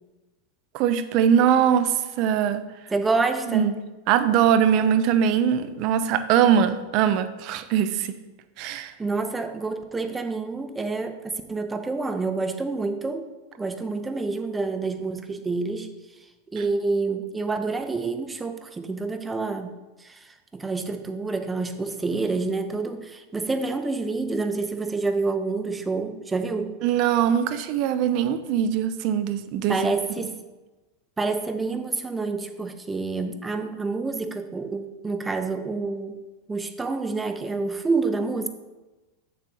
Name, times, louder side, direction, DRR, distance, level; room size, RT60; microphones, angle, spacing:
voice 1, 0.7-2.6 3.5-3.7 4.1-8.2 8.6-8.9 26.8-29.8, right 9 dB, 50° right, 12 dB, 0.6 m, -21 dB
voice 2, 2.9-3.7 9.0-13.2 13.6-15.9 16.5-19.7 20.0-26.8 29.7-30.4 31.2-36.2 36.5-38.5, right 3 dB, 15° right, 8 dB, 0.6 m, -28 dB
7.6 x 7.0 x 3.0 m, 1.1 s
supercardioid pair, 125°, 0 cm